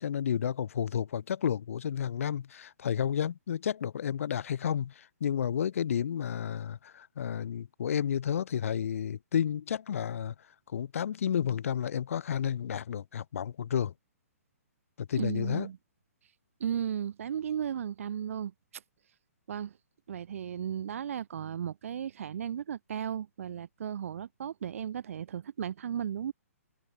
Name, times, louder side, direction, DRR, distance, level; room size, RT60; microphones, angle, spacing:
voice 1, 0.0-10.3 10.7-13.9 15.0-15.7, left 8 dB, 60° left, 7.7 m, -31 dB
voice 2, 15.2-15.8 16.6-18.8 19.5-19.7 20.1-26.3, right 9 dB, 60° right, 2.7 m, -35 dB
hypercardioid pair, 130°, 8 cm